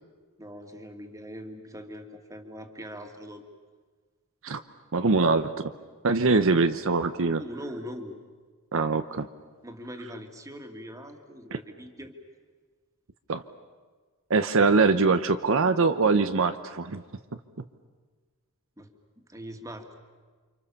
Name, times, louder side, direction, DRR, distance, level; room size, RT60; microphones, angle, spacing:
voice 1, 0.4-3.4 6.1-6.5 7.4-8.2 9.6-12.1 18.8-20.0, equal, 15° right, 5 dB, 2.3 m, -42 dB
voice 2, 4.9-5.7 6.0-7.4 8.7-9.3 11.5-11.6 13.3-13.4 14.3-17.0, right 4 dB, 65° right, 9 dB, 0.9 m, -23 dB
29.5 x 26.5 x 7.1 m, 1.4 s
head